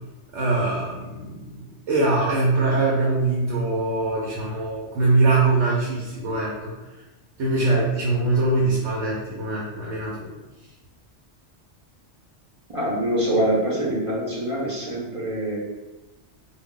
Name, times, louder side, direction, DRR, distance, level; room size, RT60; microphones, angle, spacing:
voice 1, 0.3-1.4 1.9-6.7 7.4-10.3, right 2 dB, 85° right, -4 dB, 0.9 m, -22 dB
voice 2, 12.7-15.6, right 1 dB, 35° right, -6 dB, 0.6 m, -24 dB
2.3 x 2.1 x 3.6 m, 1.1 s
omnidirectional pair, 1.2 m